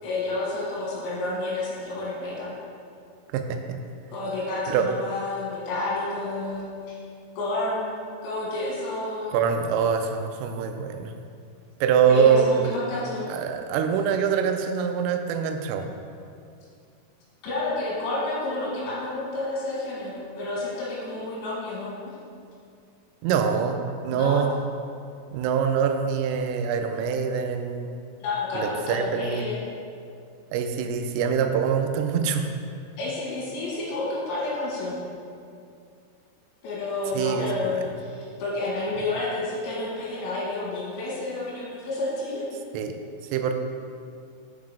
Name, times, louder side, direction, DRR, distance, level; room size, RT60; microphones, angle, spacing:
voice 1, 0.0-2.5 4.1-7.0 7.4-8.0 8.2-9.4 12.1-13.3 17.4-21.9 24.1-24.4 28.2-29.7 33.0-35.0 36.6-42.5, left 2 dB, 70° left, -6 dB, 3.7 m, -30 dB
voice 2, 9.3-11.1 11.8-12.7 13.3-15.9 23.2-24.5 25.3-27.9 28.5-29.5 30.5-32.5 37.1-37.7 42.7-42.9 43.3-43.5, right 7 dB, 85° right, 6 dB, 3.2 m, -24 dB
7.2 x 5.7 x 5.0 m, 2.4 s
omnidirectional pair, 5.8 m